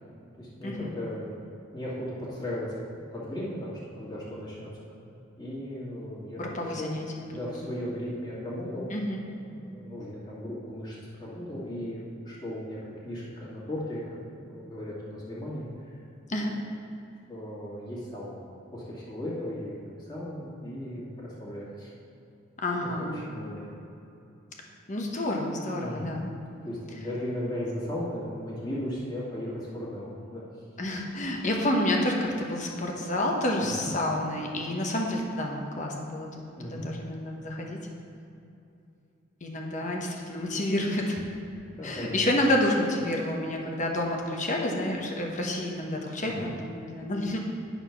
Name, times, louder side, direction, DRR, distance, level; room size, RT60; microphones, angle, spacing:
voice 1, 0.3-1.3 1.7-4.7 5.1-6.9 7.3-8.9 9.5-15.9 17.3-18.4 18.7-21.9 23.0-23.8 25.8-26.1 26.6-30.4 33.5-33.9 36.5-36.9 41.8-42.2 46.2-46.5, left 1 dB, 20° left, -7 dB, 2.1 m, -36 dB
voice 2, 6.4-7.5 8.9-9.2 16.3-16.5 22.6-23.2 24.9-26.2 30.8-37.8 39.4-41.2 41.8-47.4, left 1 dB, 40° left, 0 dB, 1.1 m, -29 dB
10.0 x 4.3 x 5.9 m, 2.7 s
head